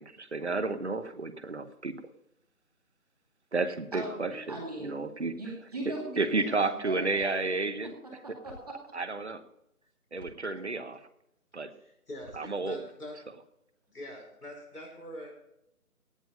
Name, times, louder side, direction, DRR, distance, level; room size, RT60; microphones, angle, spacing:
voice 1, 0.0-1.9 3.5-5.4 6.2-7.9 8.9-9.4 10.1-11.0 11.5-11.7 12.4-12.8, right 3 dB, 50° right, 12 dB, 1.1 m, -31 dB
voice 2, 3.9-5.0 5.4-7.5 8.2-9.0, right 1 dB, 25° right, -2 dB, 2.3 m, -39 dB
sound 1, 7.1-7.3 8.4-8.6 10.1-10.3 12.1-12.4, left 1 dB, 5° right, 4.1 m, -50 dB
voice 3, 11.7-13.2 13.9-15.3, left 1 dB, 80° left, 0 dB, 5.3 m, -44 dB
17.5 x 7.1 x 5.3 m, 0.81 s
figure-of-eight pair, 175°, 45 cm